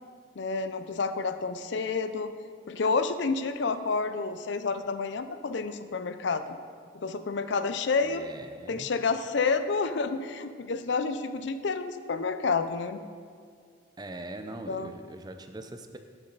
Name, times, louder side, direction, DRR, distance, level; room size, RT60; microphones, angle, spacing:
voice 1, 0.4-2.3 2.7-6.6 6.9-8.2 8.7-13.0 14.7-14.9, left 4 dB, 60° left, 10 dB, 0.5 m, -29 dB
voice 2, 8.0-8.9 14.0-16.0, right 1 dB, 20° right, 7 dB, 0.5 m, -42 dB
12.0 x 7.1 x 3.9 m, 2.1 s
head